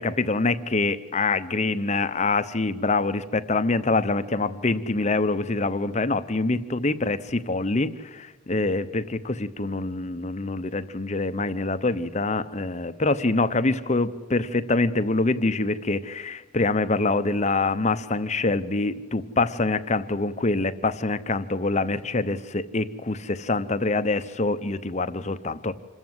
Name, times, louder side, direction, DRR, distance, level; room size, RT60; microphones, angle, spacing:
voice 1, 0.0-25.7, left 3 dB, 35° left, 11 dB, 0.8 m, -25 dB
26.5 x 14.5 x 8.0 m, 1.2 s
head